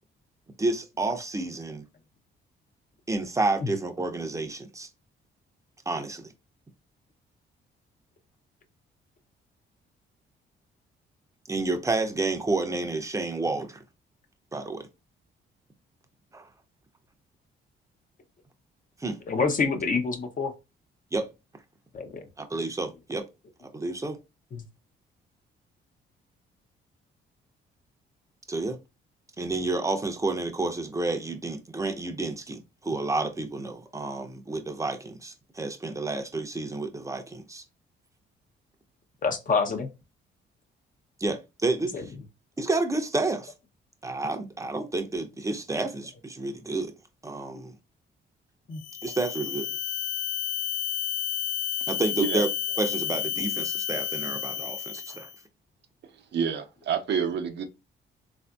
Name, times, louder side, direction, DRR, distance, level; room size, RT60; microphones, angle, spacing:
voice 1, 0.6-1.8 3.1-4.9 5.9-6.3 11.5-13.8 14.5-14.9 16.3-16.5 19.0-19.2 21.1-21.3 22.4-23.2 23.7-24.2 28.5-28.8 29.4-37.6 41.2-41.9 42.6-43.5 44.0-46.9 47.2-47.7 49.0-49.7 51.9-52.5 52.8-55.3, right 2 dB, 15° right, 0.6 m, -30 dB
voice 2, 19.3-20.5 21.9-22.2 24.5-24.6 39.2-39.9 41.9-42.1 48.7-48.8, left 4 dB, 45° left, 0.7 m, -27 dB
sound 1, 48.8-55.4, left 9 dB, 80° left, 0.5 m, -31 dB
voice 3, 56.3-57.6, right 7 dB, 60° right, 0.6 m, -28 dB
3.5 x 2.6 x 2.3 m
cardioid pair, 90°, 20 cm